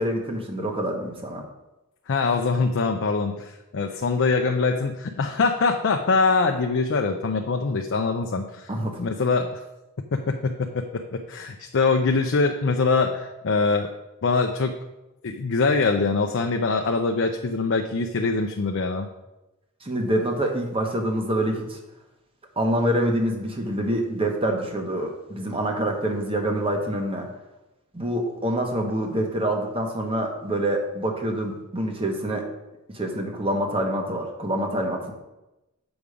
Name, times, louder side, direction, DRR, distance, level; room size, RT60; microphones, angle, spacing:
voice 1, 0.0-1.4 8.7-9.0 19.8-21.8 22.6-27.3 27.9-32.5 32.9-35.1, right 1 dB, 25° right, 2 dB, 1.1 m, -26 dB
voice 2, 2.1-8.7 9.0-9.6 10.1-10.8 11.1-13.9 14.2-14.7 15.2-19.1, left 4 dB, 60° left, 4 dB, 0.5 m, -23 dB
7.0 x 5.4 x 4.9 m, 0.99 s
head